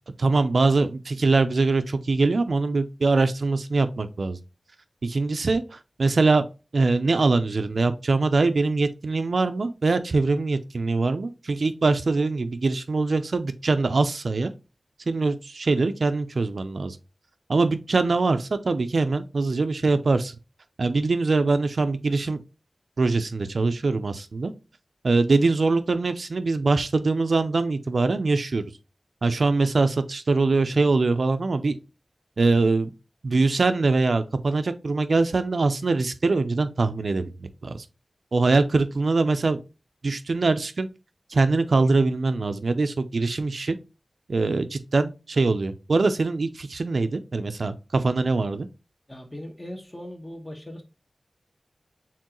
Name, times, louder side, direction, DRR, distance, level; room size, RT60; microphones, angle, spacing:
voice 1, 0.2-4.4 5.0-6.4 6.7-14.5 15.1-17.0 17.5-20.4 20.8-22.4 23.0-24.5 25.0-28.6 29.2-31.8 32.4-32.9 33.2-37.8 38.3-39.6 40.0-40.9 41.3-43.8 44.3-48.7, right 3 dB, 75° right, 0.4 m, -23 dB
voice 2, 49.1-50.8, left 1 dB, 20° left, 1.2 m, -39 dB
4.4 x 3.7 x 2.9 m
wide cardioid pair, 60°, 0 cm